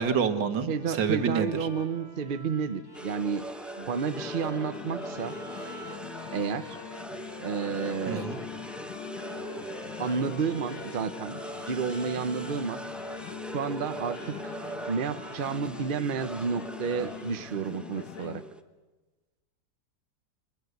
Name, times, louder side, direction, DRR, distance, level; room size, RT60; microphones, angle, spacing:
voice 1, 0.0-1.6 8.1-8.4, right 6 dB, 70° right, 9 dB, 2.1 m, -28 dB
voice 2, 0.7-3.4 3.8-5.4 6.3-6.8 7.4-8.3 10.0-11.4 11.7-12.8 13.5-14.5 14.9-18.4, right 6 dB, 50° right, 11 dB, 0.6 m, -31 dB
Bowed string instrument, 0.8-17.3, left 1 dB, 20° left, 3.2 m, -47 dB
sound 1, 2.9-18.6, right 1 dB, ahead, 0.4 m, -41 dB
sound 2, 4.1-18.4, left 8 dB, 75° left, 2.0 m, -43 dB
24.5 x 22.0 x 8.1 m, 1.2 s
omnidirectional pair, 2.1 m